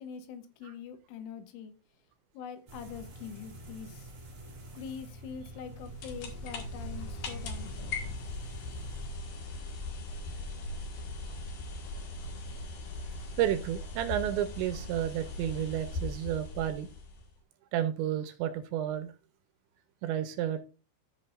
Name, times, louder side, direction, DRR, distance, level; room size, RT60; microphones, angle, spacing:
voice 1, 0.0-1.7 2.3-4.1 4.7-7.7, left 7 dB, 85° left, 3.6 m, -44 dB
sound 1, 2.7-9.1, right 2 dB, 65° right, 0.9 m, -47 dB
sound 2, 5.5-17.3, left 2 dB, 55° left, 2.9 m, -39 dB
voice 2, 13.4-16.9 17.7-19.1 20.0-20.6, right 11 dB, 80° right, 2.9 m, -31 dB
14.5 x 6.0 x 2.6 m
omnidirectional pair, 5.6 m